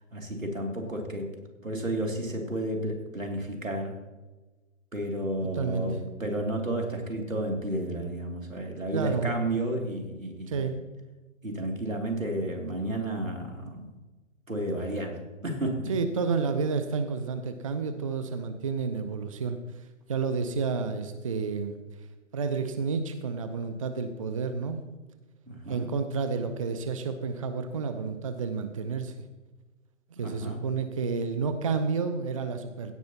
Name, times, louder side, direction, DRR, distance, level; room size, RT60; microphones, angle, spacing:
voice 1, 0.1-1.3 1.6-4.0 4.9-10.7 11.4-13.9 14.5-15.9 25.5-25.9 30.2-30.6, right 1 dB, 85° right, 2 dB, 2.7 m, -32 dB
voice 2, 5.5-5.9 8.9-9.3 10.5-10.8 15.9-19.6 20.1-21.7 22.3-24.8 25.7-29.1 30.2-32.9, right 5 dB, 25° right, 9 dB, 0.5 m, -30 dB
16.5 x 10.0 x 2.9 m, 1.2 s
figure-of-eight pair, 130°, 39 cm